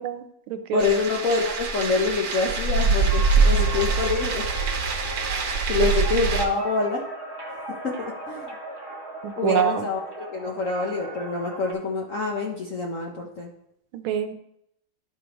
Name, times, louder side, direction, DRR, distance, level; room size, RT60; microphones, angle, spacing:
voice 1, 0.0-0.9 5.8-5.9 9.2-9.9 13.9-14.3, right 9 dB, 75° right, 8 dB, 1.4 m, -26 dB
voice 2, 0.7-4.5 5.7-7.1 7.8-8.5 9.4-13.5, left 4 dB, 60° left, -1 dB, 0.8 m, -26 dB
sound 1, 0.8-6.5, right 4 dB, 55° right, 1.4 m, -23 dB
sound 2, 3.1-11.7, right 1 dB, 20° right, 0.7 m, -38 dB
12.0 x 4.8 x 3.0 m, 0.78 s
omnidirectional pair, 2.3 m